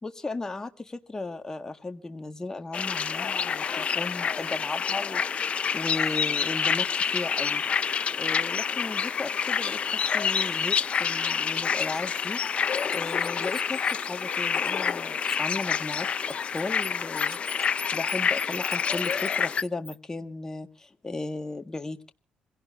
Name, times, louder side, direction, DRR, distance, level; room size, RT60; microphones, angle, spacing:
voice 1, 0.0-5.2 5.7-16.1 16.5-22.1, left 3 dB, 20° left, 7 dB, 1.6 m, -36 dB
sound 1, 2.7-19.6, left 6 dB, 45° left, 0.7 m, -28 dB
Bird, 10.9-11.0 11.5-14.9 15.2-20.0, equal, 5° left, 0.9 m, -44 dB
27.0 x 17.0 x 2.5 m, 0.37 s
cardioid pair, 80°, 3 cm